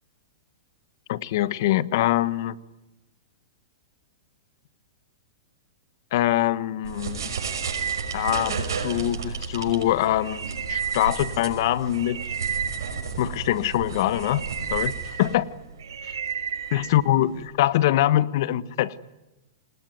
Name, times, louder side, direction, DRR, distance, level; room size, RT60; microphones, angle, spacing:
voice 1, 1.1-2.6 6.1-7.3 8.1-12.2 13.2-15.5 16.1-16.2 16.7-18.9, left 14 dB, 60° left, 1.2 m, -24 dB
sound 1, 6.8-17.5, right 6 dB, 85° right, 5.8 m, -31 dB
29.0 x 20.5 x 9.3 m
hypercardioid pair, 130°, 2 cm